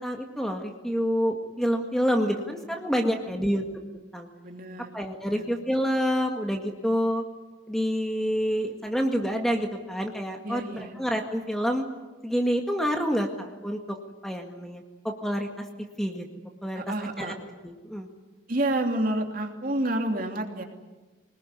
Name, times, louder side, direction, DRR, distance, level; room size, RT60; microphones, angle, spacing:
voice 1, 0.0-3.6 4.1-4.3 4.9-7.2 7.7-11.9 12.2-14.0 14.2-15.5 16.0-16.3 16.6-16.8 17.2-17.3 17.6-18.1, equal, ahead, 3 dB, 1.9 m, -27 dB
voice 2, 3.1-3.4 4.4-4.9 5.3-5.4 10.4-10.9 16.7-17.3 18.5-20.6, right 1 dB, 45° right, 3 dB, 2.9 m, -29 dB
25.5 x 20.0 x 9.8 m, 1.2 s
head